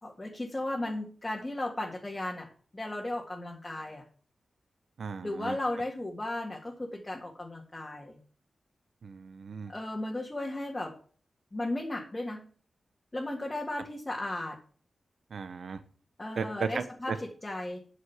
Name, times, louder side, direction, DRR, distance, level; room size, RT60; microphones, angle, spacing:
voice 1, 0.0-2.5 2.7-4.0 5.2-8.2 9.7-10.9 11.5-12.5 13.1-14.6 16.2-17.8, left 1 dB, 20° left, -2 dB, 1.9 m, -35 dB
voice 2, 5.0-5.6 9.0-9.7 15.3-15.8 16.4-17.2, right 5 dB, 80° right, 11 dB, 0.9 m, -35 dB
9.1 x 6.4 x 7.3 m, 0.43 s
wide cardioid pair, 115°, 0 cm